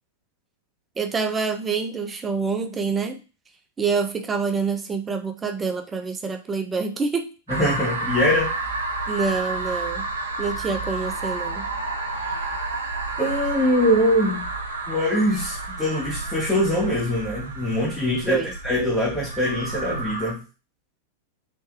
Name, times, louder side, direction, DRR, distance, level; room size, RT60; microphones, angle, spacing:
voice 1, 1.0-3.2 3.8-7.3 9.1-10.1 10.4-11.7 18.2-18.5, right 5 dB, 20° right, 7 dB, 0.6 m, -26 dB
voice 2, 7.5-8.5 13.2-14.5 14.9-20.4, equal, 5° left, -6 dB, 1.1 m, -23 dB
sound 1, 7.5-20.3, right 2 dB, 75° right, 0.6 m, -30 dB
3.6 x 2.6 x 3.5 m, 0.33 s
figure-of-eight pair, 95°, 0 cm